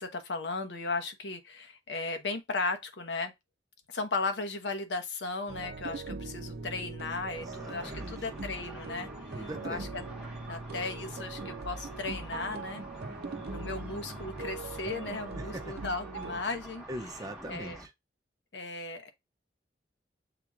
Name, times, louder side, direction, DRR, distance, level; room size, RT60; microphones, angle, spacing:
voice 1, 0.0-3.3 3.9-10.0 10.5-12.8 13.5-16.8 17.5-17.8 18.5-19.1, left 3 dB, 85° left, 1.0 m, -36 dB
sound 1, 5.5-16.4, right 3 dB, 65° right, 0.6 m, -41 dB
Car / Traffic noise roadway noise / Engine, 7.3-17.9, right 1 dB, 5° right, 1.0 m, -47 dB
voice 2, 7.4-8.3 9.4-9.9 13.0-13.5 15.3-15.8 16.9-17.9, right 1 dB, 20° right, 0.5 m, -42 dB
6.8 x 3.0 x 2.4 m
head